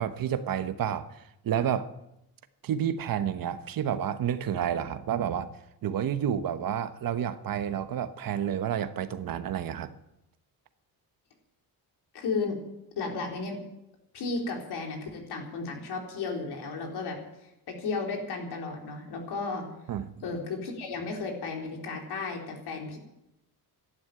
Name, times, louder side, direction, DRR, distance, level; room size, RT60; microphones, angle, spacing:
voice 1, 0.0-1.9 2.6-5.5 5.8-9.9 19.9-20.1, right 9 dB, 60° right, 11 dB, 1.1 m, -30 dB
voice 2, 12.1-12.6 13.0-13.6 14.1-17.2 17.7-19.7 20.2-23.0, left 4 dB, 75° left, 1 dB, 4.2 m, -34 dB
13.0 x 11.5 x 9.4 m, 0.86 s
cardioid pair, 140°, 40 cm